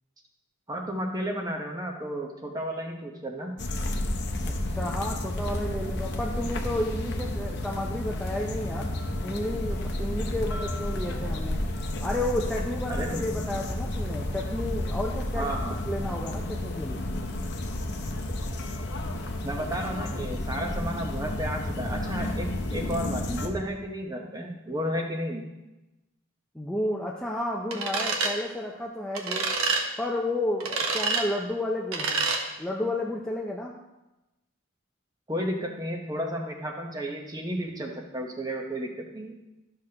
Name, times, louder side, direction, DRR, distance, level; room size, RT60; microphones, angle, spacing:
voice 1, 0.7-3.5 12.9-13.2 15.4-15.8 19.4-25.5 35.3-39.4, equal, 20° right, 2 dB, 0.9 m, -32 dB
sound 1, 3.6-23.5, left 1 dB, 50° left, 0.8 m, -31 dB
voice 2, 4.4-8.9 9.2-11.6 12.0-15.5 15.8-17.1 26.5-29.5 30.0-32.3 32.6-33.8, left 1 dB, 5° left, -2 dB, 0.5 m, -32 dB
sound 2, 27.7-28.3 29.1-29.8 30.6-31.2 31.9-32.4, right 4 dB, 80° right, 1.1 m, -27 dB
12.0 x 6.6 x 2.9 m, 1.0 s
head